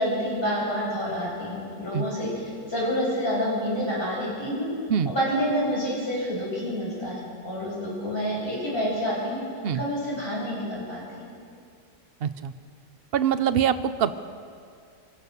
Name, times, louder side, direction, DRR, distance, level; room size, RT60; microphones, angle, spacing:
voice 1, 0.0-2.3 2.6-4.7 5.1-9.4 9.8-11.2, equal, 30° left, -5 dB, 7.9 m, -28 dB
voice 2, 12.2-12.5 13.1-14.1, right 8 dB, 70° right, 11 dB, 0.5 m, -24 dB
25.0 x 16.0 x 6.8 m, 2.3 s
omnidirectional pair, 1.9 m